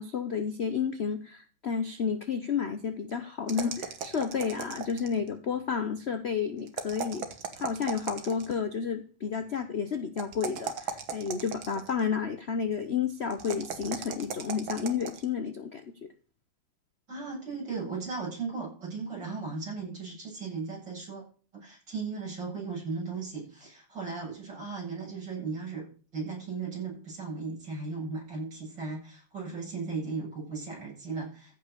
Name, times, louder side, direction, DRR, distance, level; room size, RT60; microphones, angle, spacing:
voice 1, 0.0-7.3 7.6-15.8, left 6 dB, 50° left, 9 dB, 0.8 m, -31 dB
sound 1, 3.5-5.3 6.7-8.6 10.2-12.0 13.3-15.3, right 6 dB, 85° right, 2.3 m, -37 dB
voice 2, 17.1-21.2 21.5-25.9 26.1-31.6, right 4 dB, 60° right, -4 dB, 8.9 m, -36 dB
15.0 x 5.7 x 6.8 m, 0.39 s
omnidirectional pair, 2.2 m